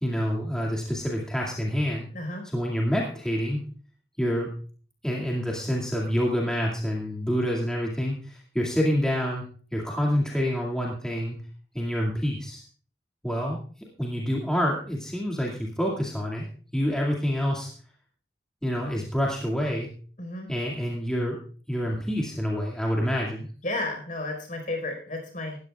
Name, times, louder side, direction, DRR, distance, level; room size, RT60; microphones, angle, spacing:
voice 1, 0.0-2.1 2.4-3.6 4.2-4.5 5.0-11.4 11.7-12.6 13.2-13.6 14.0-16.4 16.7-17.7 18.6-19.9 20.5-21.4 21.7-23.5, equal, 5° left, -3 dB, 2.3 m, -27 dB
voice 2, 2.1-2.4 20.2-20.5 23.6-25.6, left 2 dB, 45° left, 4 dB, 4.6 m, -32 dB
19.0 x 13.5 x 2.4 m, 0.41 s
head